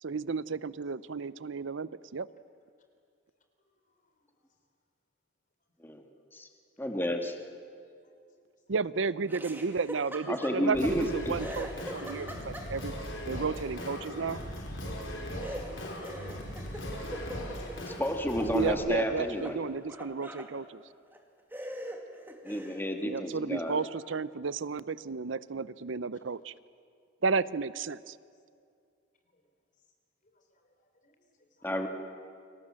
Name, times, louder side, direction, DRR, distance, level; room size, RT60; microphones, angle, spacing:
voice 1, 0.0-2.3 8.7-11.7 11.9-12.9 13.3-14.4 18.5-20.8 23.0-26.5 27.2-28.2, right 4 dB, 75° right, 18 dB, 0.6 m, -33 dB
voice 2, 3.9-4.2 6.4-6.5 8.0-8.1 16.5-17.0 17.4-17.7 23.8-23.9 29.3-29.5 30.2-31.7, left 3 dB, 40° left, 5 dB, 3.8 m, -70 dB
voice 3, 6.8-7.4 10.3-11.3 17.9-19.6 22.4-23.8 31.6-31.9, equal, 10° left, 4 dB, 1.9 m, -31 dB
Laughter, 9.3-11.1 11.4-13.0 15.4-18.5 18.9-20.5 21.1-21.2 21.5-22.9, right 1 dB, 10° right, 2.1 m, -43 dB
Singing, 10.7-18.7, equal, 85° left, 5.4 m, -39 dB
29.5 x 24.5 x 7.6 m, 2.3 s
head